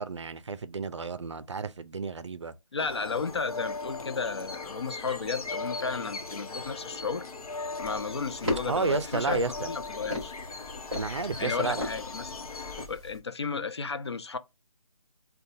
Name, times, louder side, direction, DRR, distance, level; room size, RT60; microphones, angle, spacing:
voice 1, 0.0-2.5 8.7-9.7 10.9-11.9, right 4 dB, 55° right, 0.4 m, -31 dB
voice 2, 2.7-7.2 7.8-9.4 9.7-10.3 11.4-12.4 12.9-14.4, left 5 dB, 50° left, 0.5 m, -33 dB
sound 1, 2.8-12.9, left 3 dB, 85° left, 0.9 m, -39 dB
sound 2, 7.8-13.2, left 2 dB, 5° right, 1.1 m, -38 dB
5.3 x 2.2 x 2.6 m
figure-of-eight pair, 175°, 18 cm